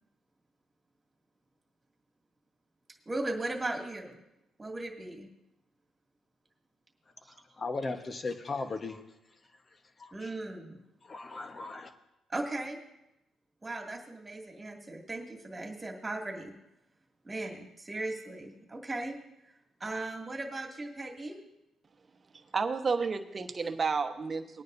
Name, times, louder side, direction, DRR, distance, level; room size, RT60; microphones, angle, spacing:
voice 1, 3.1-4.2 4.6-5.3 10.1-10.8 12.3-12.8 13.6-16.5 17.2-19.1 19.8-21.4, right 2 dB, 20° right, 2.3 m, -37 dB
voice 2, 7.3-9.0 10.0-10.3 11.0-11.9, left 3 dB, 35° left, 1.2 m, -37 dB
voice 3, 22.3-24.6, right 4 dB, 35° right, 1.1 m, -31 dB
20.0 x 9.4 x 2.7 m
cardioid pair, 90°, 0 cm